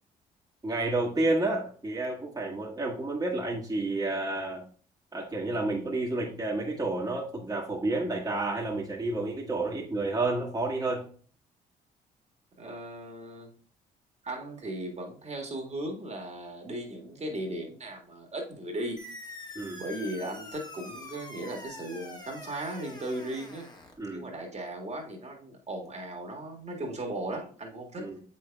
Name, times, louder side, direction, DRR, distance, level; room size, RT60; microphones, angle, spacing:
voice 1, 0.6-4.6 5.1-11.1 19.5-19.8 24.0-24.3 28.0-28.2, right 2 dB, 20° right, -3 dB, 1.5 m, -30 dB
voice 2, 12.6-13.5 14.2-19.0 19.8-23.7 24.1-28.1, right 1 dB, 40° right, 1 dB, 1.8 m, -37 dB
sound 1, 19.0-24.0, left 2 dB, 25° left, 1.6 m, -45 dB
7.6 x 5.5 x 2.3 m, 0.43 s
hypercardioid pair, 50°, 18 cm